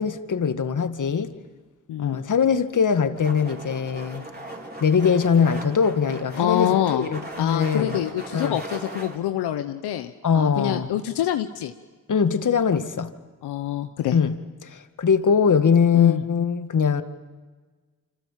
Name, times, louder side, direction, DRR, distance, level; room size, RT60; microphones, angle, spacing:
voice 1, 0.0-1.3 2.0-4.3 4.8-8.0 8.3-8.6 10.2-10.9 12.1-13.1 14.1-17.0, left 6 dB, 50° left, 9 dB, 1.9 m, -22 dB
voice 2, 1.9-2.2 6.3-7.1 7.4-11.7 13.4-14.2 15.9-16.2, left 11 dB, 80° left, 8 dB, 1.0 m, -26 dB
sound 1, 3.2-9.2, right 2 dB, 25° right, 4.8 m, -38 dB
27.0 x 26.0 x 7.5 m, 1.4 s
supercardioid pair, 45°, 39 cm